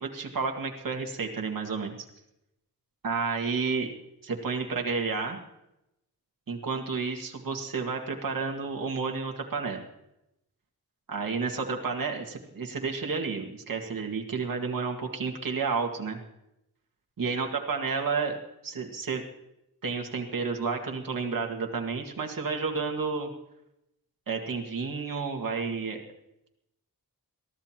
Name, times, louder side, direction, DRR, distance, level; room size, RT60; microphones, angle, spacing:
voice 1, 0.0-2.0 3.0-3.9 4.2-5.4 6.5-9.8 11.1-16.2 17.2-18.4 18.6-19.2 19.8-23.3 24.3-26.0, right 4 dB, 65° right, 1 dB, 2.0 m, -31 dB
23.0 x 14.5 x 3.0 m, 0.85 s
wide cardioid pair, 120°, 37 cm